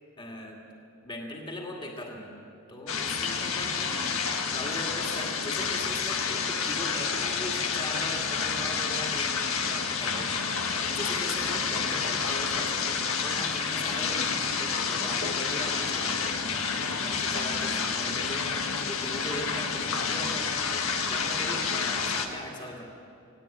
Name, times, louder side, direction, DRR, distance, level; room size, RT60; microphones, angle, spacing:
voice 1, 0.2-0.6 1.0-2.4 2.7-9.4 9.7-20.5 21.0-22.8, left 1 dB, 25° left, 0 dB, 2.2 m, -39 dB
sound 1, 2.9-22.3, left 5 dB, 80° left, 1.6 m, -29 dB
19.0 x 18.5 x 8.8 m, 2.6 s
head